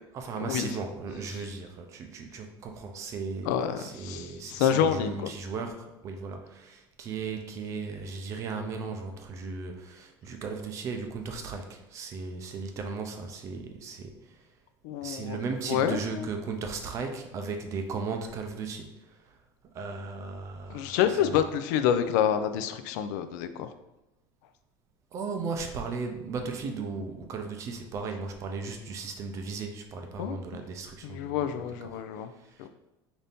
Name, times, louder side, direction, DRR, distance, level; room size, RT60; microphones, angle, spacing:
voice 1, 0.1-14.4 15.0-19.3 19.7-21.4 25.1-32.7, right 4 dB, 35° right, 5 dB, 0.5 m, -36 dB
voice 2, 3.5-5.3 14.8-15.4 15.7-16.3 20.7-23.7 30.2-30.4 31.0-32.3 32.6-32.7, left 9 dB, 85° left, 10 dB, 0.4 m, -28 dB
4.0 x 2.7 x 3.4 m, 0.97 s
cardioid pair, 165°, 9 cm